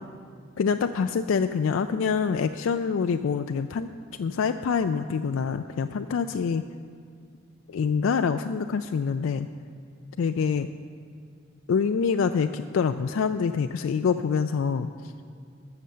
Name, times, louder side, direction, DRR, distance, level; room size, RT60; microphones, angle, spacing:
voice 1, 0.6-3.9 4.2-6.6 7.7-9.5 10.2-10.7 11.7-15.1, left 6 dB, 85° left, 8 dB, 0.4 m, -26 dB
14.0 x 7.0 x 6.7 m, 2.3 s
head